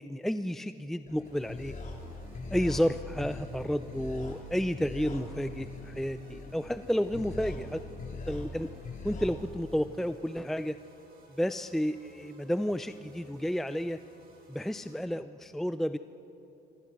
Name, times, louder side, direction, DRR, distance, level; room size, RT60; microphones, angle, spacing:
voice 1, 0.0-1.7 2.5-7.8 8.3-8.7 9.0-10.8 11.3-14.0 14.5-16.0, equal, ahead, 11 dB, 0.5 m, -31 dB
sound 1, 1.1-9.3, left 2 dB, 50° left, 3.8 m, -41 dB
sound 2, 1.2-15.0, right 2 dB, 65° right, 7.7 m, -58 dB
27.0 x 25.0 x 6.2 m, 3.0 s
cardioid pair, 110°, 17 cm